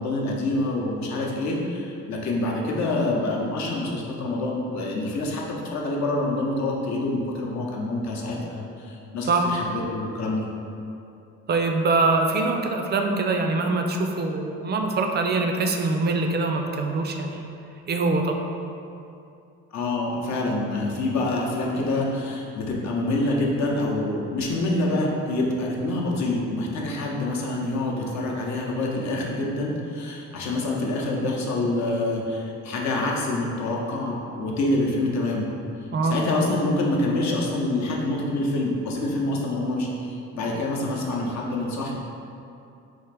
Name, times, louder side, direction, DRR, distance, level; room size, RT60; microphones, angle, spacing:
voice 1, 0.0-10.5 19.7-35.5 36.0-41.9, left 2 dB, 65° left, -2 dB, 0.7 m, -26 dB
voice 2, 11.5-17.5 17.9-18.4 35.9-36.2, right 3 dB, 35° right, 3 dB, 0.4 m, -23 dB
3.5 x 2.5 x 3.3 m, 2.6 s
cardioid pair, 90°, 30 cm